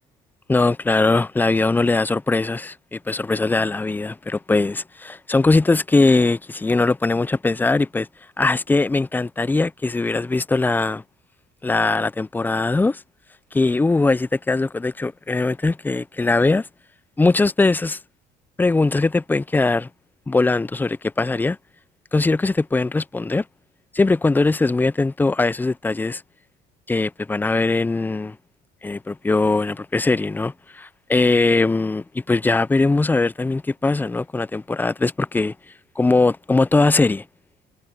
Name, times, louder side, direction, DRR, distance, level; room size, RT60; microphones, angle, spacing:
voice 1, 0.5-8.1 8.4-11.0 11.6-13.0 13.5-16.7 17.2-18.0 18.6-19.9 20.3-21.6 22.1-23.4 23.9-26.2 26.9-28.4 28.8-35.5 36.0-37.2, left 3 dB, 10° left, 0.4 m, -20 dB
cardioid pair, 110°, 17 cm